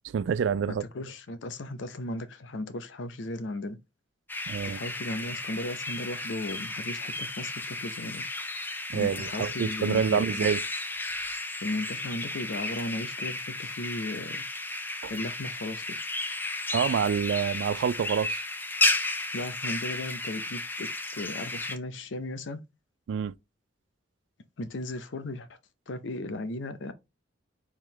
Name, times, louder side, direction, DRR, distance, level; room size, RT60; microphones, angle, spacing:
voice 1, 0.1-0.8 4.5-4.8 8.9-10.6 15.0-15.1 16.7-18.4 23.1-23.3, right 7 dB, 70° right, 0.3 m, -27 dB
voice 2, 0.7-3.8 4.6-8.2 8.9-10.5 11.6-14.4 15.1-16.0 19.3-22.6 24.6-25.5 25.9-26.9, left 2 dB, 75° left, 0.6 m, -36 dB
sound 1, 4.3-21.8, left 2 dB, 10° left, 0.5 m, -33 dB
4.6 x 3.6 x 3.1 m
head